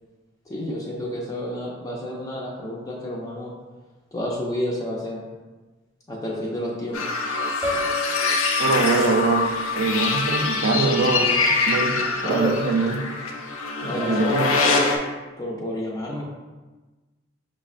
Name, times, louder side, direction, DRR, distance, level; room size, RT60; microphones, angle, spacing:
voice 1, 0.5-3.5 4.1-5.2 6.1-7.0 12.2-12.6 13.8-14.9 15.4-16.2, equal, 15° left, -4 dB, 0.3 m, -29 dB
sound 1, 6.9-15.0, left 4 dB, 90° left, 0.5 m, -24 dB
Piano, 7.6-9.6, left 1 dB, 20° right, 0.6 m, -31 dB
voice 2, 8.6-13.0 13.8-14.5, right 3 dB, 70° right, 4 dB, 0.4 m, -23 dB
5.8 x 2.1 x 2.4 m, 1.2 s
head